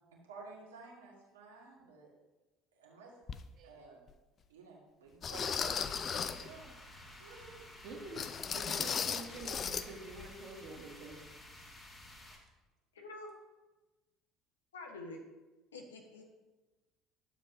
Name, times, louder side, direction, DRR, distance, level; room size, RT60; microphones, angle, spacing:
voice 1, 0.0-2.1 2.7-3.1 3.6-4.1 4.5-5.8 6.1-7.6, right 3 dB, 85° right, -3 dB, 1.9 m, -53 dB
sound 1, 3.3-3.4 4.1-4.2 5.2-6.5 8.2-9.9 10.1-10.3 10.8-10.9, left 7 dB, 40° left, 0.5 m, -36 dB
sound 2, 5.3-12.4, left 1 dB, 20° left, 2.3 m, -53 dB
voice 2, 7.8-11.2, right 2 dB, 55° right, 0 dB, 1.9 m, -47 dB
voice 3, 12.9-13.3 14.7-15.2 15.7-16.2, left 2 dB, 85° left, 2 dB, 1.2 m, -47 dB
12.0 x 7.3 x 2.7 m, 1.2 s
hypercardioid pair, 65°, 0 cm